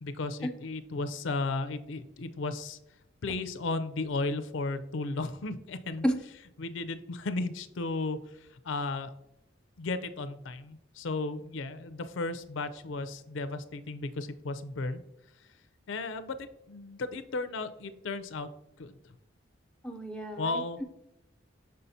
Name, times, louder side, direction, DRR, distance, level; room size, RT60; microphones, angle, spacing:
voice 1, 0.0-2.8 3.2-6.1 6.6-8.2 8.6-9.1 9.8-15.0 15.9-18.5 18.8-18.9 20.4-20.8, left 3 dB, 75° left, 11 dB, 0.5 m, -34 dB
voice 2, 19.8-20.8, equal, 5° left, 4 dB, 0.4 m, -31 dB
6.5 x 5.6 x 2.7 m, 0.86 s
head